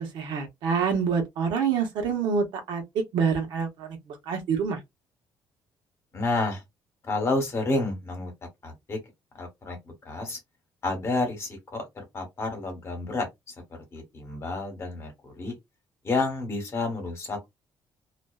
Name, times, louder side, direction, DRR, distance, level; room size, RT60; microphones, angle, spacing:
voice 1, 0.0-4.8, right 6 dB, 80° right, 0.9 m, -27 dB
voice 2, 6.1-6.6 7.0-8.3 8.6-9.0 9.3-9.8 10.0-10.4 10.8-13.3 13.9-15.5 16.0-17.6, left 2 dB, 35° left, 1.1 m, -30 dB
2.5 x 2.1 x 2.3 m
cardioid pair, 135°, 8 cm